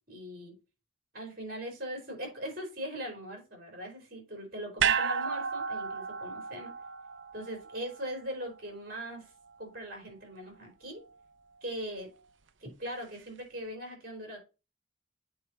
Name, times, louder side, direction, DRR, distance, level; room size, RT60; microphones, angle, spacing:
voice 1, 0.1-0.5 1.1-6.7 7.3-9.3 9.6-11.0 11.6-12.1 12.6-14.4, equal, 45° right, 3 dB, 3.8 m, -40 dB
sound 1, 4.8-9.1 9.5-9.6, right 7 dB, 65° right, 0.6 m, -33 dB
8.4 x 4.5 x 3.9 m, 0.29 s
head